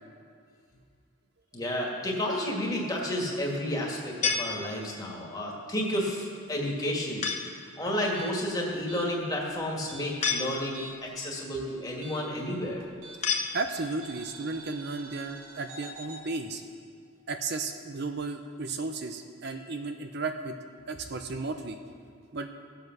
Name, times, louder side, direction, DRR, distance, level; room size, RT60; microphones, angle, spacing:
voice 1, 1.5-7.3 7.8-12.8 19.4-19.6, left 1 dB, 15° left, -2 dB, 2.0 m, -31 dB
sound 1, 4.2-5.2 7.2-7.7 10.2-11.1 13.2-14.1, left 5 dB, 35° left, 0.9 m, -31 dB
sound 2, 8.0-11.2 11.4-13.5 14.0-16.2, right 2 dB, 75° right, 2.2 m, -47 dB
voice 2, 13.2-16.6 17.3-20.6 20.9-21.8 22.3-22.5, right 3 dB, 50° right, 6 dB, 0.6 m, -34 dB
16.0 x 7.9 x 6.1 m, 2.2 s
head